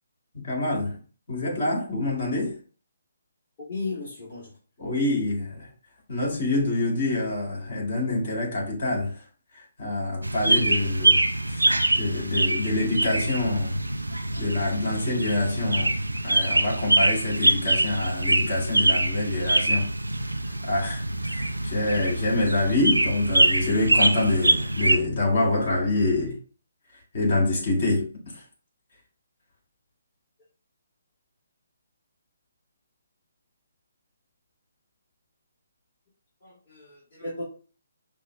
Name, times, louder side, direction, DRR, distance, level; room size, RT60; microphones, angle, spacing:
voice 1, 0.4-1.0 1.3-2.5 4.8-5.7 6.1-9.2 9.5-11.2 11.5-13.8 14.4-15.9 16.2-19.9 20.6-26.3 27.1-28.4, left 2 dB, 55° left, 2.1 m, -26 dB
voice 2, 3.6-4.5 36.4-37.4, left 3 dB, 40° left, 1.7 m, -35 dB
sound 1, 10.2-25.0, right 2 dB, 90° right, 0.4 m, -24 dB
5.5 x 2.1 x 3.5 m
figure-of-eight pair, 140°, 0 cm